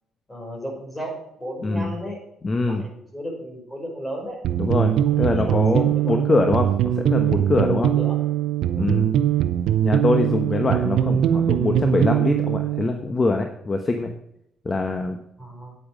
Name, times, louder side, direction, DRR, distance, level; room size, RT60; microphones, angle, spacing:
voice 1, 0.3-2.2 2.7-4.4 4.9-6.5 7.5-8.3 8.6-9.2 15.4-15.8, equal, 10° left, 0 dB, 5.3 m, -35 dB
voice 2, 2.4-2.8 4.6-6.7 7.0-7.9 8.7-9.1 9.8-14.1 14.6-15.2, left 3 dB, 30° left, 5 dB, 1.1 m, -23 dB
sound 1, 4.4-12.9, right 11 dB, 80° right, 0.6 m, -21 dB
9.5 x 8.8 x 5.2 m, 0.78 s
cardioid pair, 90°, 0 cm